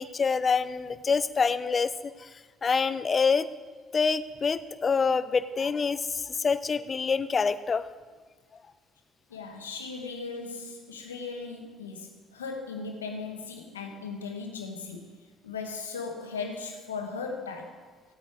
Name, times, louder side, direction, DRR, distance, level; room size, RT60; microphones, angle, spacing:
voice 1, 0.0-2.3 2.6-3.5 3.9-7.8, left 5 dB, 35° left, 14 dB, 0.7 m, -26 dB
voice 2, 9.3-17.9, left 4 dB, 90° left, 4 dB, 1.3 m, -38 dB
15.5 x 8.7 x 4.8 m, 1.4 s
hypercardioid pair, 50°, 0 cm